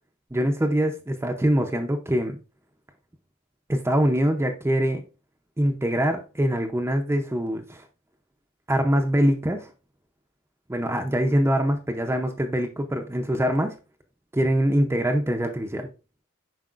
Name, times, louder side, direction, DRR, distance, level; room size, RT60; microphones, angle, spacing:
voice 1, 0.3-2.4 3.7-5.0 5.6-7.8 8.7-9.7 10.7-13.8 14.3-15.9, equal, 10° right, 4 dB, 0.5 m, -23 dB
7.6 x 5.1 x 2.4 m, 0.32 s
head